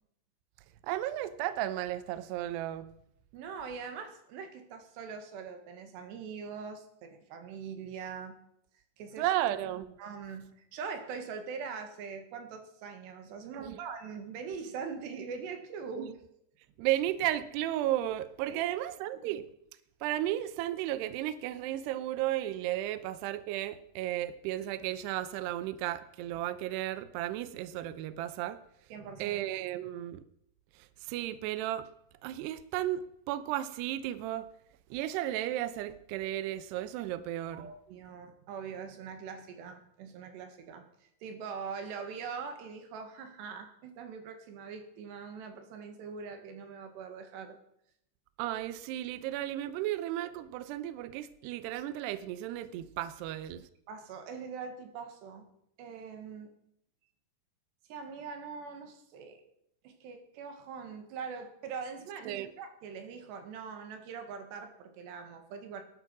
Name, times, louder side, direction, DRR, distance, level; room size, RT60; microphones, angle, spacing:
voice 1, 0.8-2.9 9.2-9.9 13.5-13.8 16.0-16.1 16.8-19.4 20.0-28.6 29.2-30.2 31.1-31.9 32.2-33.0 33.3-34.5 34.9-37.7 48.4-53.6 62.3-62.5, right 13 dB, 85° right, 13 dB, 2.3 m, -34 dB
voice 2, 3.3-8.4 9.0-9.3 10.0-16.1 18.5-18.6 19.2-19.4 28.9-29.4 37.5-47.6 53.9-55.5 55.8-56.5 57.9-59.5 59.8-65.8, right 5 dB, 65° right, 6 dB, 3.5 m, -42 dB
18.5 x 11.5 x 6.1 m, 0.77 s
omnidirectional pair, 5.8 m